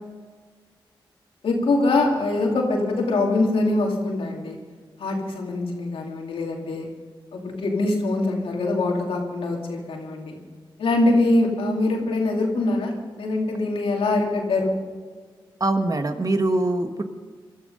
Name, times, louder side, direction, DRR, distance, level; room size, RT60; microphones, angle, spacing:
voice 1, 1.4-4.6 5.0-6.9 7.3-10.4 10.8-14.8, left 2 dB, 90° left, 0 dB, 2.6 m, -23 dB
voice 2, 15.6-17.0, right 2 dB, 40° right, 7 dB, 1.5 m, -23 dB
20.0 x 12.5 x 5.4 m, 1.5 s
cardioid pair, 50°, 9 cm